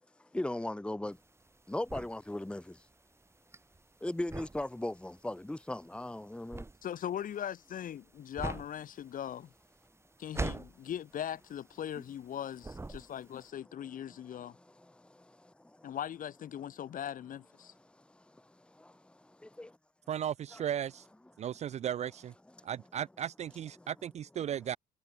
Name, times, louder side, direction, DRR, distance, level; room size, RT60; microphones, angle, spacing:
voice 1, 0.3-1.2 1.7-2.8 4.0-6.7 14.8-15.9 18.1-19.8 20.5-20.6 22.6-22.7 23.8-23.9, left 1 dB, 5° left, 2.0 m, -39 dB
sound 1, 1.1-12.3 12.6-13.4, right 3 dB, 15° right, 3.6 m, -42 dB
voice 2, 6.8-9.5 10.2-14.6 15.8-17.7, left 10 dB, 55° left, 4.8 m, -40 dB
voice 3, 20.1-21.0 21.4-22.3 22.6-24.8, right 10 dB, 40° right, 0.4 m, -36 dB
cardioid pair, 110°, 17 cm